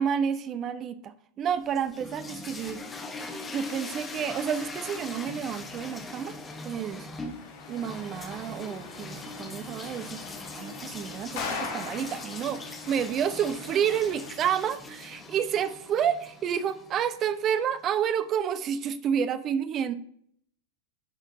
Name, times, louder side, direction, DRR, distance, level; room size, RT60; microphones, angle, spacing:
voice 1, 0.0-2.8 3.5-7.1 7.7-10.2 10.5-19.9, right 8 dB, 30° right, 13 dB, 0.4 m, -30 dB
sound 1, 1.5-17.6, left 3 dB, 15° left, 0.9 m, -41 dB
sound 2, 7.2-14.3, left 5 dB, 50° left, 1.2 m, -41 dB
10.5 x 4.4 x 2.6 m, 0.63 s
figure-of-eight pair, 90°, 0 cm